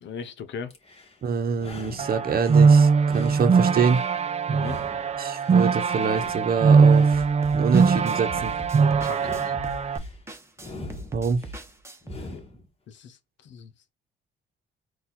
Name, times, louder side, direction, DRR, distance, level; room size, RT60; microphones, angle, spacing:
voice 1, 0.0-0.7 4.5-4.8 9.0-9.5 12.2-12.4 12.9-13.7, left 6 dB, 70° left, 0.8 m, -38 dB
sound 1, 0.7-1.2 1.5-2.7 3.0-4.2 4.5-5.7 6.0-7.2 7.6-8.7 9.1-10.2 10.6-11.6 12.0-12.7, left 2 dB, 30° left, 1.8 m, -43 dB
voice 2, 1.2-4.0 5.2-7.2 7.5-8.5 11.1-11.4, right 5 dB, 50° right, 1.0 m, -25 dB
sound 2, 2.0-10.0, right 5 dB, 35° right, 0.5 m, -21 dB
sound 3, 7.1-12.2, right 1 dB, 15° right, 1.1 m, -40 dB
4.2 x 2.6 x 4.2 m
cardioid pair, 90°, 20 cm